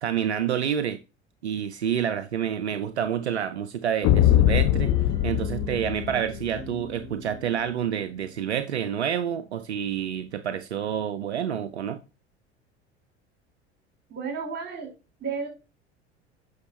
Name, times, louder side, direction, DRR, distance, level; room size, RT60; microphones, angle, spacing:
voice 1, 0.0-1.0 1.4-4.9 5.2-12.0, right 9 dB, 80° right, 0.6 m, -28 dB
sound 1, 4.0-6.6, left 12 dB, 45° left, 0.5 m, -22 dB
sound 2, 4.6-8.6, right 1 dB, 15° left, 3.4 m, -41 dB
voice 2, 14.1-14.9 15.2-15.5, right 5 dB, 30° right, 4.8 m, -32 dB
9.6 x 6.4 x 2.8 m
figure-of-eight pair, 70°, 33 cm